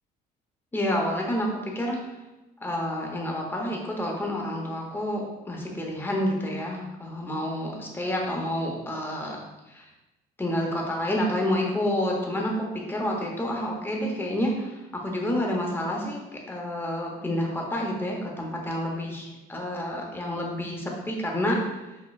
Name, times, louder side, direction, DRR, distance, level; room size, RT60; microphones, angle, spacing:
voice 1, 0.7-1.5 1.7-2.0 2.6-9.4 9.7-9.9 10.4-16.2 16.5-21.8, left 1 dB, 15° left, -1 dB, 0.8 m, -29 dB
6.0 x 2.2 x 2.3 m, 1.0 s
cardioid pair, 110°, 17 cm